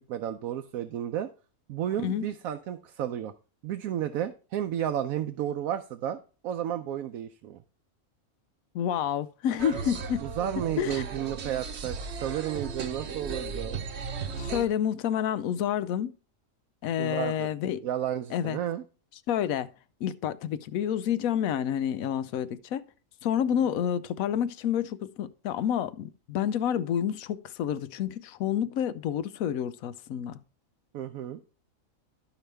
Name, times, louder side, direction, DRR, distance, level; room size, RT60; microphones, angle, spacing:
voice 1, 0.1-1.3 1.7-3.3 3.6-6.2 6.4-7.6 10.2-13.8 17.0-17.5 17.8-18.8 30.9-31.4, right 10 dB, 85° right, 1.0 m, -32 dB
voice 2, 8.7-10.2 10.8-11.0 14.4-16.1 16.8-17.8 18.3-18.6 19.3-19.7 20.0-22.8 23.2-30.4, left 9 dB, 90° left, 1.0 m, -29 dB
sound 1, 9.6-14.7, right 5 dB, 55° right, 1.0 m, -36 dB
13.0 x 4.9 x 3.3 m
omnidirectional pair, 1.4 m